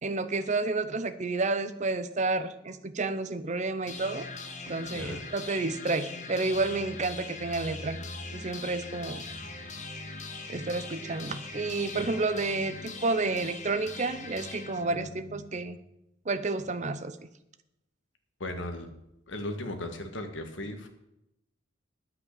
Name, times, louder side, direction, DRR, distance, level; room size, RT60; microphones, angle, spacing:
voice 1, 0.0-4.3 4.7-8.0 8.3-9.2 10.5-15.8 16.3-17.3, right 3 dB, 35° right, 11 dB, 0.6 m, -30 dB
sound 1, 3.9-15.8, left 3 dB, 35° left, 1.3 m, -41 dB
voice 2, 18.4-18.9 19.3-20.9, left 1 dB, 60° left, 6 dB, 1.6 m, -36 dB
9.8 x 8.3 x 6.5 m, 0.85 s
head